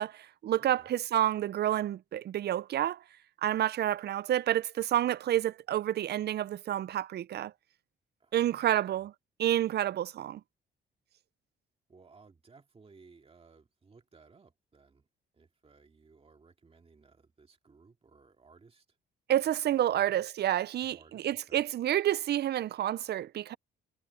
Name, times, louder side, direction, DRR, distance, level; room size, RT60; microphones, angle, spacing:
voice 1, 0.0-3.0 3.4-7.5 8.3-9.1 9.4-10.4 19.3-23.6, right 12 dB, 55° right, 0.5 m, -29 dB
voice 2, 0.6-0.9 8.2-9.1 11.9-15.1 15.3-19.0 19.7-20.2 20.8-21.6, right 4 dB, 30° right, 2.3 m, -60 dB
cardioid pair, 90°, 20 cm